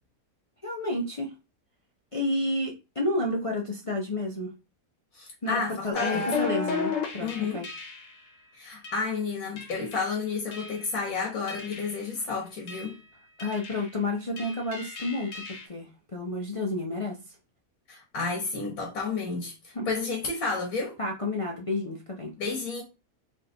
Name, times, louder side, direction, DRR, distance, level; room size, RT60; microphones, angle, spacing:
voice 1, 0.6-1.3 2.1-4.5 5.4-7.6 13.4-17.2 19.7-19.9 21.0-22.3, left 2 dB, 40° left, 0.5 m, -30 dB
voice 2, 5.1-6.3 7.2-7.6 8.5-13.0 17.9-21.0 22.4-22.8, left 4 dB, 80° left, 1.6 m, -31 dB
sound 1, 5.9-8.2 8.8-9.0 9.6-10.1 10.5-11.0 11.5-12.0 12.7-13.0 13.4-13.9 14.4-15.7, left 4 dB, 60° left, 1.2 m, -34 dB
4.1 x 2.8 x 3.8 m
omnidirectional pair, 1.5 m